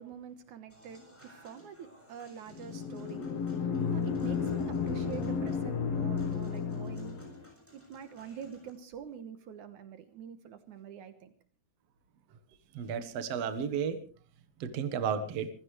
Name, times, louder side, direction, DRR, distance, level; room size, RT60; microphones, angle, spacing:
voice 1, 0.0-7.4 7.7-11.3, right 8 dB, 75° right, 10 dB, 2.5 m, -46 dB
Human voice / Acoustic guitar / Piano, 0.7-8.7, equal, 5° left, 7.0 m, -58 dB
sound 1, 2.5-7.5, left 6 dB, 60° left, 2.3 m, -32 dB
voice 2, 12.7-14.0 14.6-15.5, right 7 dB, 60° right, 10 dB, 2.2 m, -33 dB
26.0 x 16.0 x 3.2 m, 0.39 s
omnidirectional pair, 3.6 m